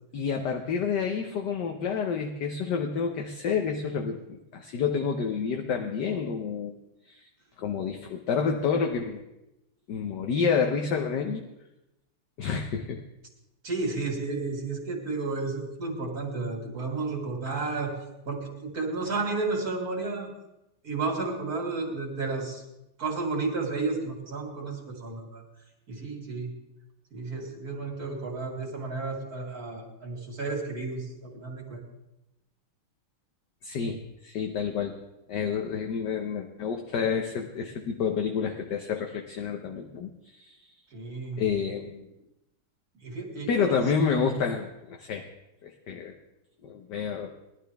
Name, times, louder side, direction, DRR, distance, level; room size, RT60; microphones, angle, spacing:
voice 1, 0.1-6.7 7.1-7.2 7.6-9.2 9.9-11.5 12.4-13.0 33.6-35.0 35.3-40.6 41.4-42.1 43.5-45.3 45.6-46.1 46.6-47.3, left 6 dB, 60° left, 3 dB, 1.4 m, -29 dB
voice 2, 13.6-18.0 18.2-20.3 20.8-22.6 23.0-25.4 25.9-26.5 27.1-31.8 40.9-41.4 43.0-43.8, right 3 dB, 45° right, 1 dB, 2.9 m, -32 dB
19.5 x 11.5 x 3.4 m, 0.91 s
omnidirectional pair, 2.3 m